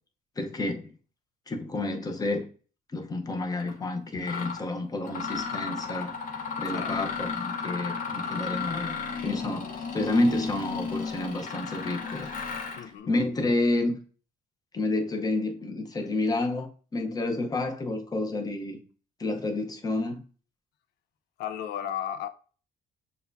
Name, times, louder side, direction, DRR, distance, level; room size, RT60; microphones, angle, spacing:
voice 1, 0.4-0.9 1.5-2.4 2.9-6.1 6.6-9.0 9.2-12.3 13.1-13.9 14.7-18.8 19.2-20.2, left 2 dB, 20° left, 0.8 m, -29 dB
Mechanisms, 3.6-3.7 4.2-4.6 5.1-12.9, left 5 dB, 55° left, 1.0 m, -34 dB
voice 2, 12.8-13.1 21.4-22.3, left 10 dB, 75° left, 0.5 m, -34 dB
6.7 x 2.3 x 2.6 m
cardioid pair, 110°, 17 cm